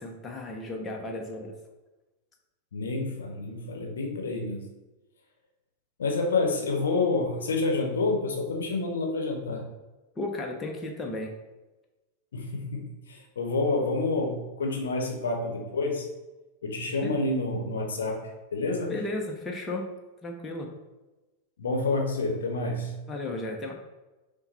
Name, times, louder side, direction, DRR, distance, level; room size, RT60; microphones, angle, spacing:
voice 1, 0.0-1.5 10.2-11.3 17.0-17.2 18.9-19.9 20.2-20.7 23.1-23.7, left 2 dB, 20° left, 1 dB, 0.7 m, -34 dB
voice 2, 2.7-4.7 6.0-9.6 12.3-16.1 16.6-18.9 21.6-23.0, left 3 dB, 65° left, 2 dB, 0.8 m, -28 dB
5.7 x 2.2 x 4.1 m, 1.1 s
figure-of-eight pair, 90°, 0 cm